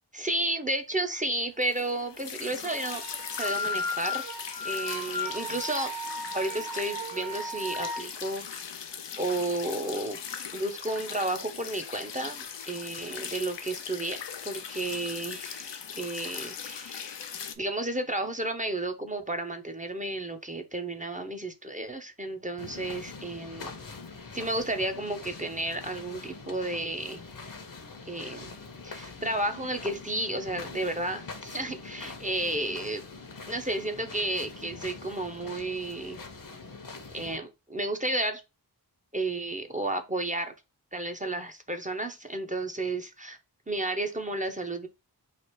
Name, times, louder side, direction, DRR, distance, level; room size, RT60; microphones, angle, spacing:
voice 1, 0.1-3.0 3.3-4.2 4.6-5.9 6.3-8.7 9.2-10.2 10.5-14.2 14.4-17.2 17.6-23.7 24.3-27.2 28.1-28.5 28.8-33.0 33.5-36.2 37.1-38.4 39.1-40.5 40.9-43.4 43.7-44.9, right 1 dB, 20° right, 0.6 m, -32 dB
sound 1, 1.6-17.6, left 7 dB, 80° left, 0.5 m, -40 dB
sound 2, 2.7-8.0, left 1 dB, 85° right, 0.9 m, -35 dB
sound 3, 22.6-37.4, left 4 dB, 50° left, 0.8 m, -44 dB
3.3 x 2.4 x 4.4 m
wide cardioid pair, 70°, 42 cm